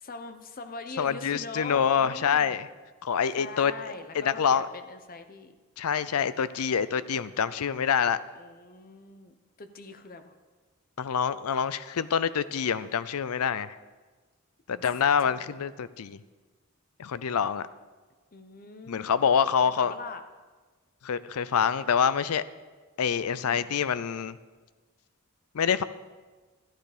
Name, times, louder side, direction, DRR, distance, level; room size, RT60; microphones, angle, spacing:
voice 1, 0.0-2.6 3.4-5.5 8.4-10.3 14.7-15.5 18.3-19.2 19.8-20.2 23.4-23.8, left 3 dB, 40° left, 8 dB, 0.8 m, -42 dB
voice 2, 1.0-2.7 3.0-3.7 4.1-4.7 5.8-8.2 11.0-13.8 14.7-16.2 17.0-17.7 18.9-19.9 21.0-22.4 23.0-24.4 25.5-25.8, left 7 dB, 80° left, 16 dB, 0.5 m, -26 dB
12.0 x 11.0 x 5.0 m, 1.4 s
head